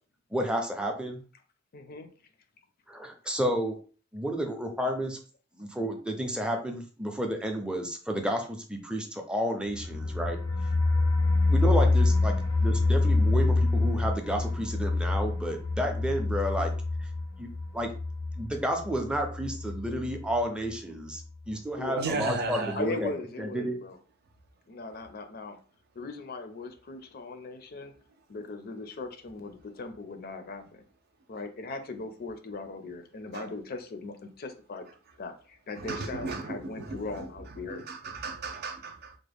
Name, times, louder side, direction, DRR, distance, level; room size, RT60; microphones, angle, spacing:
voice 1, 0.3-1.2 2.9-3.8 4.1-5.2 5.5-10.4 11.5-16.7 17.0-17.1 17.4-17.5 17.7-17.9 18.4-21.2 21.5-23.7, equal, 5° right, 0.5 m, -31 dB
voice 2, 1.7-2.1 21.8-22.2 22.7-24.0 24.7-25.6 25.9-27.9 28.3-30.8 31.3-34.9 35.2-37.8, left 3 dB, 50° left, 0.5 m, -39 dB
sound 1, 9.7-20.4 20.7-20.8 21.1-21.2, left 2 dB, 80° left, 0.8 m, -26 dB
voice 3, 22.0-22.9 33.3-33.5 35.7-37.3 37.6-39.2, right 3 dB, 50° right, 0.5 m, -35 dB
3.5 x 2.1 x 3.4 m
head